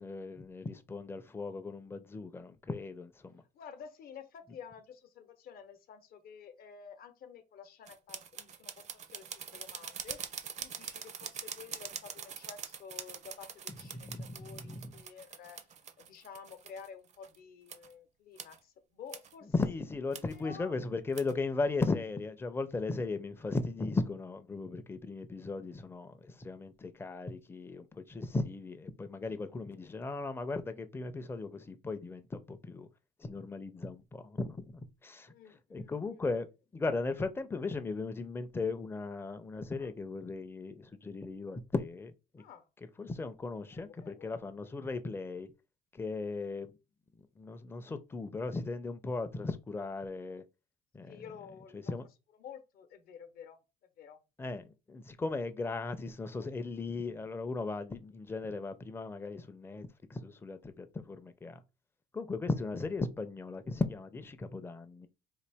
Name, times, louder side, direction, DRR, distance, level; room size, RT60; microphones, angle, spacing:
voice 1, 0.0-3.4 13.9-14.9 19.5-32.9 33.2-35.3 35.7-36.5 36.7-42.4 43.0-45.5 45.9-46.7 47.4-50.4 50.9-51.2 51.7-52.1 54.4-61.6 62.1-65.1, left 3 dB, 15° left, 0.4 m, -37 dB
voice 2, 3.5-19.5 20.3-20.8 35.3-36.2 39.8-39.9 42.4-42.7 43.7-44.3 51.0-52.0 52.4-53.6 54.0-54.2, left 7 dB, 60° left, 0.8 m, -51 dB
sound 1, 7.9-17.4 17.7-17.9 18.4-18.6 19.1-19.3 20.1-20.4 21.1-21.3, right 7 dB, 40° right, 0.5 m, -44 dB
3.9 x 2.5 x 3.4 m
cardioid pair, 110°, 17 cm